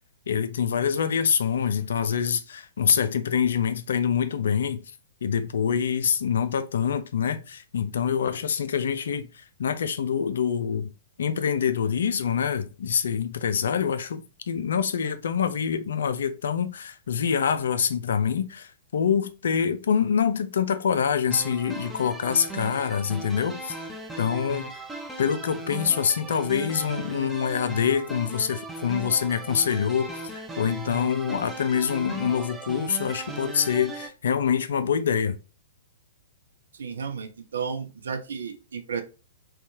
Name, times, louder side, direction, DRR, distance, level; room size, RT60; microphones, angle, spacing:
voice 1, 0.3-4.8 5.2-10.9 11.2-23.9 24.2-24.7 25.2-35.4, left 7 dB, 65° left, 0.4 m, -25 dB
sound 1, 21.3-34.1, right 3 dB, 5° right, 0.5 m, -38 dB
voice 2, 36.8-39.0, right 6 dB, 70° right, 0.4 m, -33 dB
2.7 x 2.3 x 2.6 m
figure-of-eight pair, 115°, 0 cm